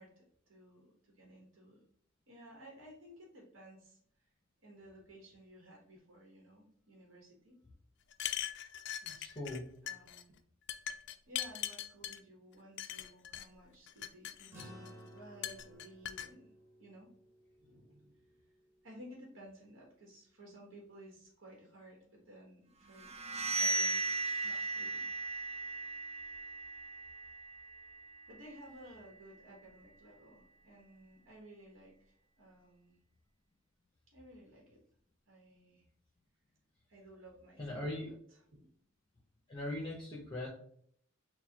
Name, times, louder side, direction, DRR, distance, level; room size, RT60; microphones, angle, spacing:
voice 1, 0.0-1.8 2.3-4.3 4.6-7.5 9.8-10.3 11.3-16.5 16.8-17.1 17.6-18.4 18.8-23.1 23.6-25.2 28.3-33.0 34.1-34.8 35.3-35.8 36.9-38.7, equal, 80° right, -2 dB, 1.1 m, -56 dB
sound 1, 8.1-9.6 9.9-10.2 10.7-12.2 12.8-13.5 13.9-14.9 15.4-16.3, left 11 dB, 60° left, 0.3 m, -41 dB
voice 2, 9.0-9.6 37.6-38.1 39.5-40.5, left 1 dB, 25° left, -4 dB, 0.8 m, -40 dB
sound 2, 14.5-19.2, equal, 10° right, 1.0 m, -56 dB
sound 3, 23.0-28.6, right 2 dB, 30° right, 0.4 m, -37 dB
6.4 x 2.2 x 2.8 m, 0.64 s
head